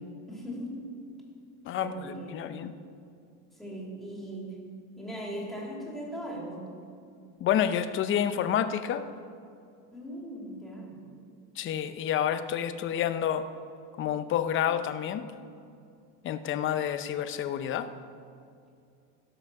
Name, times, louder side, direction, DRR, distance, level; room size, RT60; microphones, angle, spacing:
voice 1, 0.3-0.8 1.8-2.5 3.6-4.6 5.0-6.7 9.9-11.0, equal, ahead, -4 dB, 2.8 m, -39 dB
voice 2, 1.6-2.7 7.4-9.0 11.6-13.5 14.0-15.3 16.2-17.9, left 9 dB, 35° left, 11 dB, 0.6 m, -29 dB
16.5 x 6.0 x 6.6 m, 2.5 s
cardioid pair, 145°, 37 cm